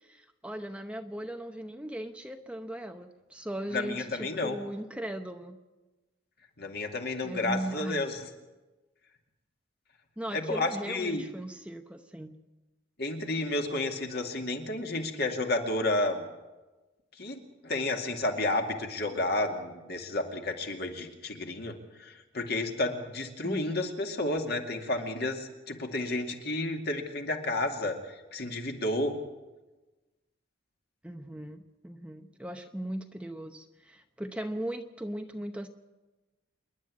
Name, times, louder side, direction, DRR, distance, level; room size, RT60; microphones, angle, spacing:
voice 1, 0.0-5.6 7.2-8.0 10.2-12.3 23.4-23.9 31.0-35.7, right 1 dB, 5° right, 5 dB, 0.8 m, -38 dB
voice 2, 3.7-4.6 6.6-8.2 10.3-11.2 13.0-16.3 17.1-29.2, left 2 dB, 50° left, 3 dB, 2.4 m, -31 dB
27.0 x 11.0 x 8.6 m, 1.1 s
head